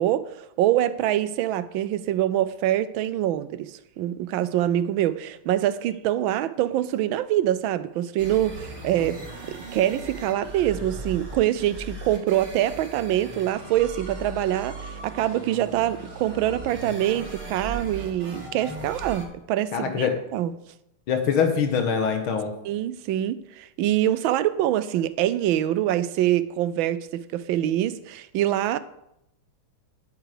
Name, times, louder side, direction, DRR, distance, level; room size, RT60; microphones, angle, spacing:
voice 1, 0.0-20.5 22.6-28.8, right 12 dB, 80° right, 1.3 m, -25 dB
sound 1, 8.2-19.2, right 2 dB, 40° right, 3.1 m, -38 dB
voice 2, 19.7-20.2 21.1-22.5, left 6 dB, 85° left, 2.0 m, -23 dB
10.5 x 8.3 x 4.9 m
omnidirectional pair, 2.2 m